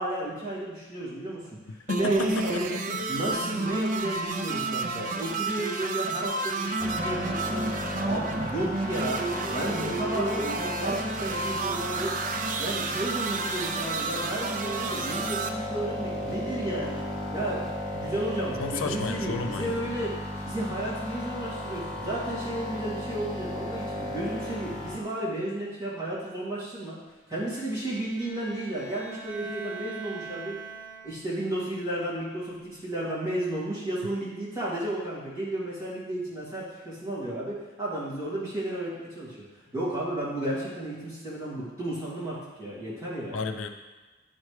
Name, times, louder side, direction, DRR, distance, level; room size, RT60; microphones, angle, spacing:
voice 1, 0.0-1.4 1.7-2.7 3.1-7.8 8.0-9.2 9.5-12.1 12.6-17.0 17.3-20.2 20.4-27.0 27.3-30.6 31.0-39.4 39.7-43.4, right 1 dB, 15° right, -9 dB, 2.2 m, -33 dB
voice 2, 1.9-3.0 18.6-19.9 43.3-43.7, left 4 dB, 80° left, 7 dB, 0.4 m, -32 dB
sound 1, 1.9-15.5, right 3 dB, 40° right, 0.4 m, -31 dB
sound 2, 6.8-25.0, left 1 dB, 5° left, 0.9 m, -35 dB
Bowed string instrument, 27.3-31.4, right 5 dB, 70° right, 1.5 m, -43 dB
9.4 x 4.3 x 3.2 m, 1.2 s
head